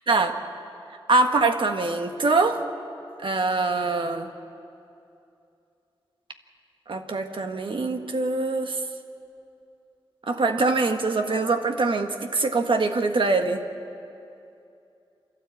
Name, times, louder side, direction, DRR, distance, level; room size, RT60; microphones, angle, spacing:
voice 1, 0.1-0.4 1.1-2.6 3.2-4.3 6.9-8.8 10.3-13.6, right 3 dB, 65° right, 5 dB, 1.6 m, -23 dB
27.5 x 13.0 x 8.5 m, 2.6 s
cardioid pair, 55°, 9 cm